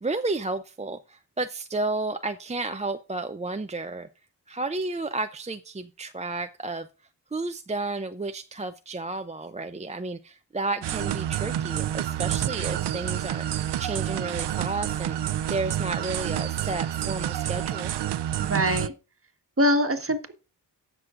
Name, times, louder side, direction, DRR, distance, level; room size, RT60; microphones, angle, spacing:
voice 1, 0.0-4.1 4.5-6.9 7.3-17.9, right 3 dB, 15° right, 8 dB, 0.5 m, -32 dB
sound 1, 10.8-18.9, right 11 dB, 75° right, 0.6 m, -29 dB
voice 2, 18.4-18.9 19.6-20.3, equal, 30° right, 6 dB, 1.5 m, -23 dB
18.0 x 6.2 x 2.5 m, 0.34 s
cardioid pair, 55°, 42 cm